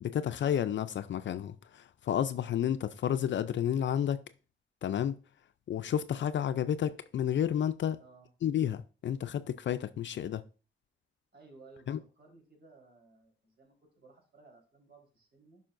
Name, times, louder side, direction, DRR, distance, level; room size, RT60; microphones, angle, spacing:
voice 1, 0.0-4.2 4.8-5.2 5.7-8.0 8.4-10.4 11.9-12.0, left 9 dB, 60° left, 0.4 m, -31 dB
voice 2, 8.0-8.3 11.3-15.6, right 3 dB, 55° right, 4.1 m, -58 dB
12.0 x 5.6 x 2.6 m
cardioid pair, 95°, 21 cm